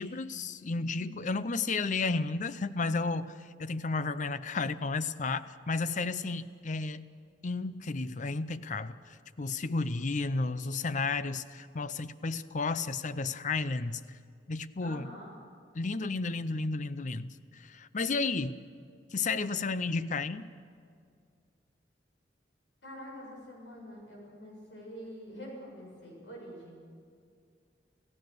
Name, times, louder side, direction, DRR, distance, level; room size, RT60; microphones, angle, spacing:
voice 1, 0.0-7.0 7.4-14.0 14.5-15.1 15.7-18.6 19.1-20.5, left 3 dB, 45° left, 14 dB, 0.6 m, -32 dB
voice 2, 14.8-15.3 22.8-26.9, equal, 75° left, -1 dB, 7.4 m, -46 dB
28.5 x 15.5 x 6.7 m, 2.2 s
head